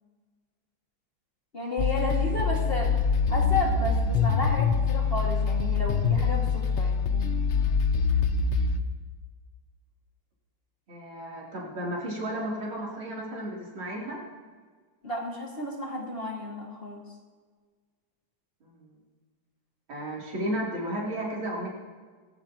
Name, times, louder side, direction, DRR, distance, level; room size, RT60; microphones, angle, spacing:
voice 1, 1.5-2.9 3.3-7.6 15.0-17.0, left 1 dB, 30° left, -2 dB, 2.2 m, -32 dB
sound 1, 1.8-8.8, left 5 dB, 75° left, 0.6 m, -25 dB
voice 2, 10.9-14.2 18.6-18.9 19.9-21.7, right 1 dB, 80° right, -5 dB, 4.1 m, -33 dB
19.0 x 15.5 x 3.0 m, 1.5 s
omnidirectional pair, 2.2 m